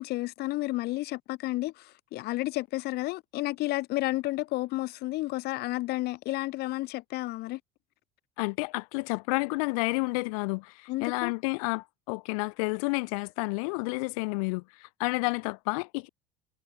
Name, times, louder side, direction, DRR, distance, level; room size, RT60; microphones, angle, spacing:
voice 1, 0.0-7.6 10.9-11.3, left 19 dB, 65° left, 5.9 m, -31 dB
voice 2, 8.4-16.1, left 29 dB, 80° left, 6.6 m, -30 dB
supercardioid pair, 105°, 18 cm